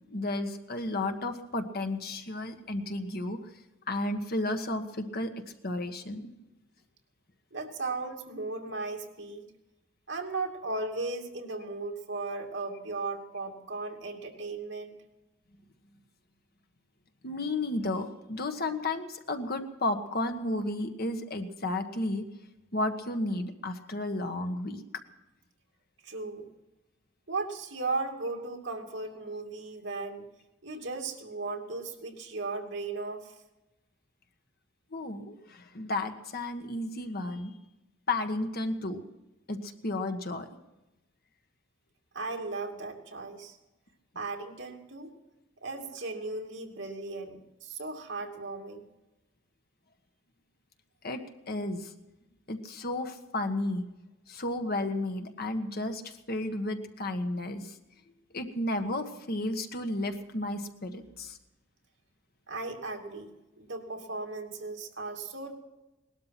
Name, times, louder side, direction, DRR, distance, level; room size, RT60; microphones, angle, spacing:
voice 1, 0.1-3.4 3.9-5.3 5.6-6.3 17.2-22.2 22.7-24.8 34.9-37.5 38.1-39.0 39.5-40.5 51.0-51.2 51.5-51.9 52.5-53.8 54.3-57.7 58.3-61.4, left 2 dB, 50° left, 6 dB, 1.4 m, -33 dB
voice 2, 7.5-9.5 10.1-14.9 26.0-26.5 27.3-30.2 30.6-33.3 42.1-43.6 44.1-45.1 45.6-48.8 62.5-63.3 63.6-65.6, right 3 dB, 65° right, 1 dB, 2.6 m, -36 dB
19.0 x 12.5 x 5.9 m, 1.0 s
head